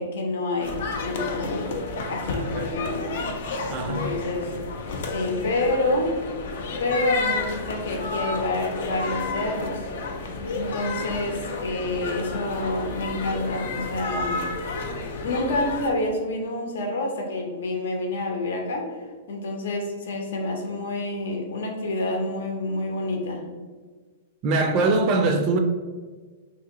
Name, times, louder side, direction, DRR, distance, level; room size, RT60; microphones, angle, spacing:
voice 1, 0.0-1.8 2.1-3.3 3.8-4.5 5.1-6.1 6.8-9.9 10.5-14.9 15.2-19.0 19.3-23.4, left 2 dB, 75° left, 1 dB, 0.8 m, -28 dB
sound 1, 0.6-15.9, left 3 dB, 60° left, 0.5 m, -31 dB
voice 2, 2.4-2.7 3.7-4.2 24.4-25.6, right 3 dB, 35° right, 5 dB, 0.3 m, -23 dB
2.7 x 2.7 x 3.8 m, 1.4 s
hypercardioid pair, 155°, 0 cm